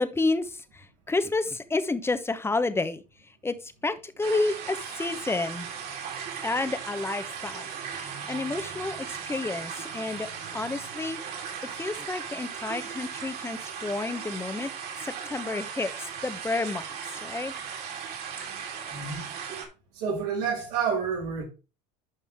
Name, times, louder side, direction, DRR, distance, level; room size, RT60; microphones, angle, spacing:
voice 1, 0.0-3.0 3.4-5.7 6.4-11.2 11.8-14.7 15.0-15.9 16.2-17.5, left 3 dB, 10° left, 1.0 m, -30 dB
sound 1, 4.2-19.6, right 7 dB, 50° right, 3.2 m, -37 dB
voice 2, 18.9-19.3 19.9-21.4, right 6 dB, 85° right, 5.9 m, -29 dB
11.5 x 5.3 x 3.6 m
supercardioid pair, 105°, 20 cm